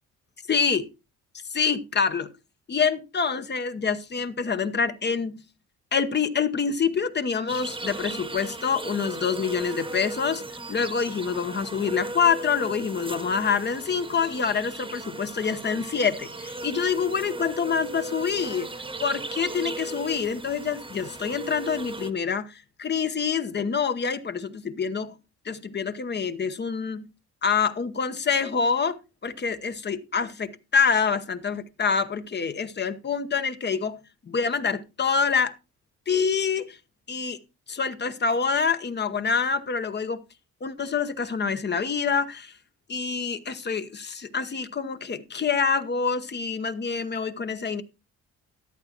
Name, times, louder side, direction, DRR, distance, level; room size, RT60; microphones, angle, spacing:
voice 1, 0.5-0.9 1.5-2.3 2.7-5.4 5.9-10.4 10.7-18.7 19.0-25.2 25.4-27.1 27.4-34.0 34.3-35.5 36.1-36.8 37.1-37.4 37.7-40.2 40.6-42.5 42.9-47.8, left 6 dB, 35° left, 1.0 m, -26 dB
sound 1, 7.5-22.1, right 2 dB, 15° right, 1.2 m, -37 dB
13.0 x 11.0 x 2.9 m
cardioid pair, 90°, 30 cm